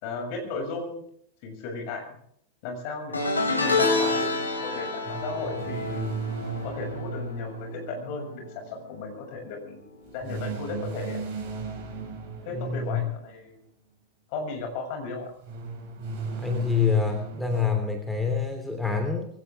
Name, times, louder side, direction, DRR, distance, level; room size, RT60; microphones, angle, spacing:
voice 1, 0.0-1.0 1.4-2.2 2.6-6.1 6.6-9.8 10.1-11.2 12.4-13.6 14.3-15.3, left 3 dB, 45° left, 4 dB, 6.6 m, -35 dB
sound 1, 3.1-8.5 8.8-9.2 10.4-10.5, left 3 dB, 80° left, 3.7 m, -28 dB
sound 2, 5.0-8.6 10.2-13.3 15.4-17.6, right 4 dB, 45° right, 6.7 m, -36 dB
voice 2, 12.5-13.0 16.4-19.3, left 5 dB, 5° left, 4 dB, 3.2 m, -26 dB
22.5 x 17.0 x 3.6 m, 0.67 s
figure-of-eight pair, 90°, 0 cm